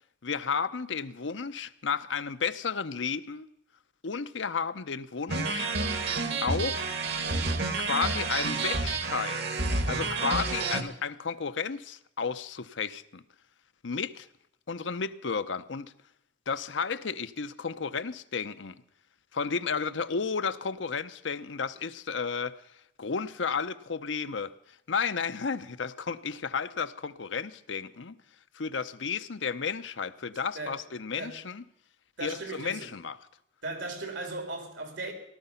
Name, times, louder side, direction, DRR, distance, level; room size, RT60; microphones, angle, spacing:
voice 1, 0.2-3.5 4.0-5.7 6.4-6.9 7.8-9.4 9.9-13.2 13.8-14.3 14.7-15.9 16.5-18.7 19.3-22.6 23.0-24.5 24.9-28.2 28.5-31.6 32.2-33.2, left 5 dB, 85° left, 0.7 m, -32 dB
sound 1, 5.3-10.8, right 3 dB, 65° right, 1.6 m, -29 dB
voice 2, 32.2-32.9 33.6-35.1, right 2 dB, 85° right, 3.4 m, -37 dB
18.0 x 12.5 x 5.7 m
head